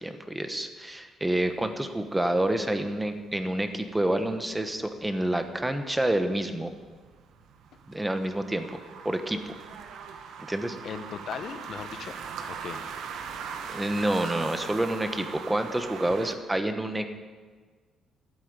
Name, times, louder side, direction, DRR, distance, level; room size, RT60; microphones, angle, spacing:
voice 1, 0.0-6.7 7.9-8.7 9.0-9.4 10.4-10.8 13.6-17.1, right 1 dB, 10° right, 7 dB, 1.1 m, -28 dB
sound 1, 1.5-16.3, right 6 dB, 75° right, 1.1 m, -41 dB
voice 2, 10.8-12.1 12.5-12.9, left 7 dB, 55° left, 10 dB, 1.0 m, -38 dB
13.5 x 8.3 x 8.1 m, 1.5 s
cardioid pair, 135°, 0 cm